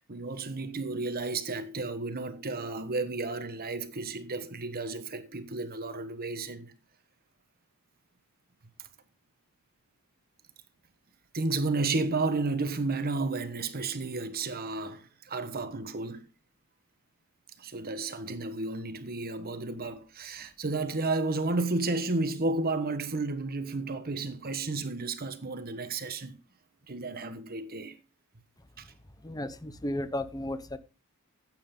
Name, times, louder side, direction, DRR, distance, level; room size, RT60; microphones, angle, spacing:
voice 1, 0.1-6.7 11.3-16.3 17.6-26.4 26.9-28.0 28.8-28.9, right 3 dB, 45° right, 1.3 m, -32 dB
voice 2, 29.2-30.8, left 1 dB, 15° left, 1.0 m, -34 dB
14.5 x 9.1 x 3.8 m
head